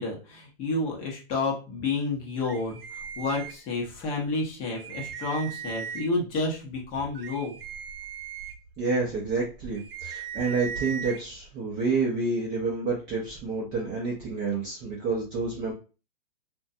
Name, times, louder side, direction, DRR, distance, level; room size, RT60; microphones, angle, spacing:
voice 1, 0.0-7.6, left 3 dB, 20° left, -2 dB, 0.7 m, -30 dB
sound 1, 2.4-4.0 4.4-4.5 4.7-6.3 6.8-11.2, right 7 dB, 75° right, 0.5 m, -39 dB
voice 2, 8.8-15.7, right 4 dB, 15° right, -4 dB, 0.5 m, -29 dB
2.5 x 2.2 x 2.5 m, 0.34 s
hypercardioid pair, 155°, 29 cm